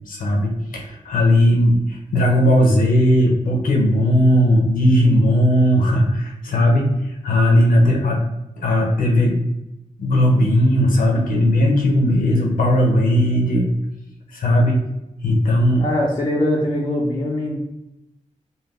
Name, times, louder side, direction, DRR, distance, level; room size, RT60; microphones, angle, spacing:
voice 1, 0.1-8.2 8.6-9.4 10.0-13.7 14.3-14.8 15.2-15.8, equal, 85° left, 0 dB, 0.5 m, -17 dB
voice 2, 15.8-17.6, left 1 dB, 35° left, -5 dB, 0.6 m, -22 dB
2.2 x 2.2 x 3.3 m, 0.90 s
cardioid pair, 65°, 14 cm